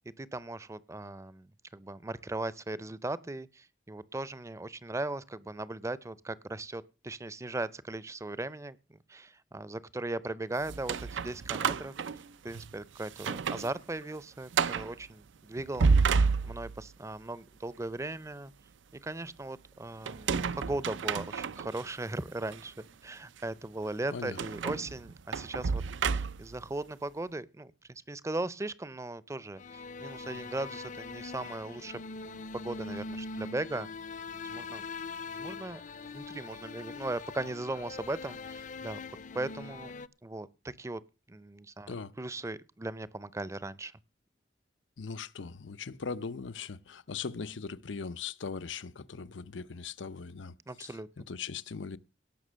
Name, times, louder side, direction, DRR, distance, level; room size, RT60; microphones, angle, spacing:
voice 1, 0.2-18.5 19.0-33.9 34.5-34.8 35.3-39.0 39.3-39.9 40.2-40.5 40.8-41.0 41.3-44.0 50.7-51.1, right 2 dB, 15° right, 0.5 m, -38 dB
sound 1, 10.6-12.7 13.1-13.7 14.0-14.1 14.5-14.9 15.6-16.9 20.1-21.8 22.5-22.6 24.4-26.6, right 5 dB, 90° right, 0.5 m, -30 dB
sound 2, 29.6-40.1, left 4 dB, 45° left, 0.5 m, -42 dB
voice 2, 45.0-50.5 50.8-52.0, left 5 dB, 90° left, 0.7 m, -39 dB
17.5 x 6.0 x 6.3 m
head